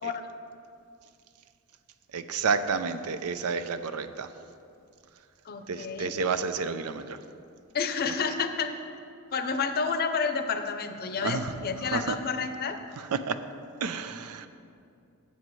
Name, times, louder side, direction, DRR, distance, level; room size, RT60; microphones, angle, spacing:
voice 1, 2.1-4.3 5.7-7.2 11.2-11.5 11.9-12.2 13.1-13.4 13.8-14.5, right 5 dB, 85° right, 11 dB, 0.5 m, -30 dB
voice 2, 5.4-6.1 7.7-8.8 9.3-12.8, left 5 dB, 45° left, 8 dB, 0.6 m, -30 dB
12.5 x 8.4 x 3.2 m, 2.5 s
head